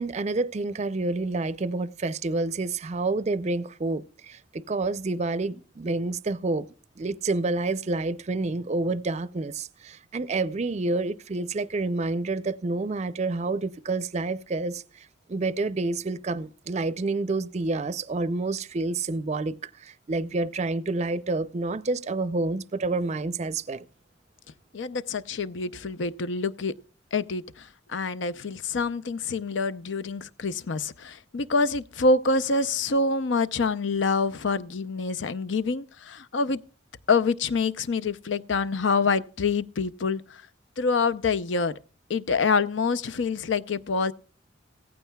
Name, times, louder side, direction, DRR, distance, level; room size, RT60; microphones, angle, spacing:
voice 1, 0.0-6.7 7.0-23.8, right 3 dB, 35° right, 0.5 m, -28 dB
voice 2, 24.7-26.7 27.1-36.6 37.1-40.4 40.8-41.8 42.1-44.1, left 4 dB, 75° left, 0.6 m, -26 dB
16.5 x 15.0 x 2.3 m
head